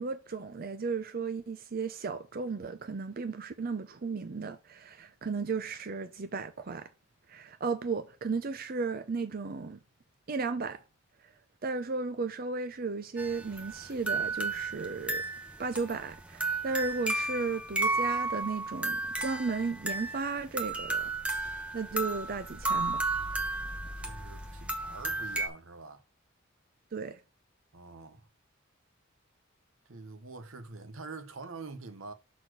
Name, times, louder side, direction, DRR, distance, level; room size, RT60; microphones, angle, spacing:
voice 1, 0.0-6.9 7.3-9.8 10.3-10.8 11.6-15.2 15.6-21.1 21.7-23.0 26.9-27.2, right 4 dB, 45° right, 0.5 m, -34 dB
sound 1, 13.2-25.5, right 2 dB, 5° right, 0.9 m, -33 dB
voice 2, 24.0-26.0 27.7-28.3 29.9-32.1, right 3 dB, 80° right, 1.0 m, -45 dB
6.3 x 4.1 x 6.2 m
head